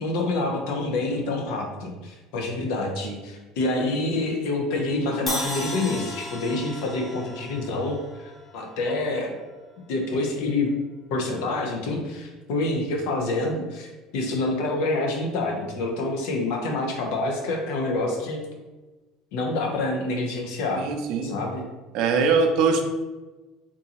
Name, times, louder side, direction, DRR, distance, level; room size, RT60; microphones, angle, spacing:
voice 1, 0.0-9.3 9.9-10.7 11.1-18.5 19.3-20.8 21.2-21.6, left 2 dB, 75° left, 2 dB, 0.7 m, -27 dB
Crash cymbal, 5.3-9.3, left 1 dB, 20° left, 0.6 m, -35 dB
voice 2, 20.8-21.4 21.9-22.8, right 4 dB, 65° right, 5 dB, 0.5 m, -22 dB
3.7 x 2.6 x 2.9 m, 1.2 s
cardioid pair, 125°, 0 cm